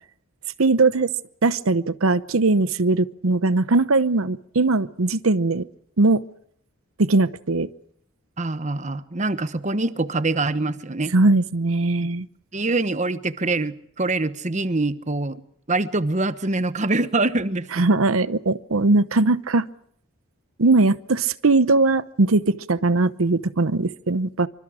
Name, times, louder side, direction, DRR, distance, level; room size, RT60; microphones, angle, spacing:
voice 1, 0.6-1.1 1.4-5.7 6.0-6.2 7.0-7.7 11.1-12.3 17.7-19.7 20.6-24.5, right 3 dB, 90° right, 15 dB, 0.9 m, -20 dB
voice 2, 8.4-11.1 12.0-12.1 12.5-15.4 15.7-17.8, right 2 dB, 35° right, 13 dB, 1.1 m, -24 dB
27.0 x 25.0 x 5.0 m, 0.69 s
head